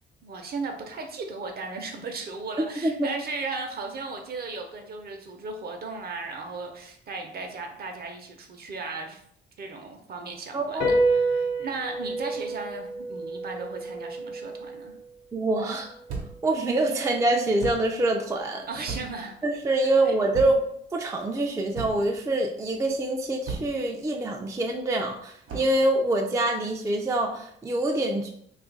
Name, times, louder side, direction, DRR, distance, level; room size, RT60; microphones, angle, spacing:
voice 1, 0.2-9.2 9.6-14.9 18.7-19.3 20.0-20.2, right 3 dB, 50° right, 4 dB, 0.7 m, -36 dB
voice 2, 10.5-10.9 15.3-15.9 16.4-18.7 19.4-20.6 20.9-28.3, right 2 dB, 15° right, 2 dB, 0.4 m, -25 dB
sound 1, 10.8-17.5, right 2 dB, 65° left, 0.7 m, -30 dB
sound 2, 16.1-16.5 17.6-17.9 18.9-19.3 20.3-20.7 21.7-22.2 23.5-23.8 25.5-25.8, right 4 dB, 90° right, 0.8 m, -35 dB
2.7 x 2.4 x 3.8 m, 0.69 s
cardioid pair, 90°, 20 cm